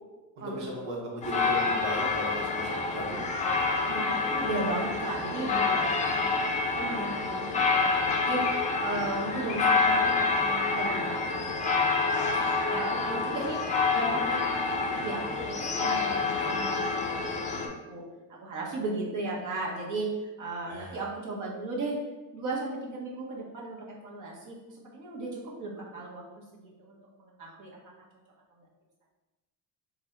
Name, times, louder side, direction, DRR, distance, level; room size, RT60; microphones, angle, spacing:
voice 1, 0.4-3.2 20.7-21.0, right 1 dB, 80° right, -3 dB, 1.4 m, -36 dB
sound 1, 1.2-17.7, left 4 dB, 20° left, 0.4 m, -28 dB
voice 2, 3.8-18.0 18.3-20.1 20.4-21.9 22.3-27.8, right 2 dB, 50° right, -3 dB, 1.3 m, -36 dB
3.9 x 2.6 x 4.4 m, 1.1 s
cardioid pair, 145°, 39 cm